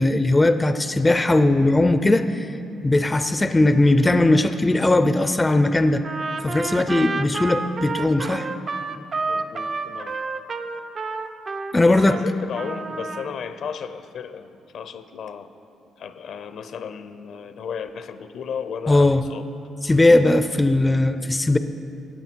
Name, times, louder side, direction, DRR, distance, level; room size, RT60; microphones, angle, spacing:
voice 1, 0.0-2.5 2.8-6.0 6.4-8.5 11.7-12.2 18.9-19.2 19.8-21.6, left 2 dB, 15° left, 10 dB, 0.4 m, -18 dB
Trumpet, 6.0-12.3 12.5-13.3, right 4 dB, 45° right, 0.5 m, -30 dB
voice 2, 8.0-8.4 9.3-10.2 11.7-15.5 16.0-19.5, left 7 dB, 70° left, 11 dB, 0.6 m, -34 dB
14.0 x 8.7 x 4.5 m, 2.7 s
cardioid pair, 90°, 0 cm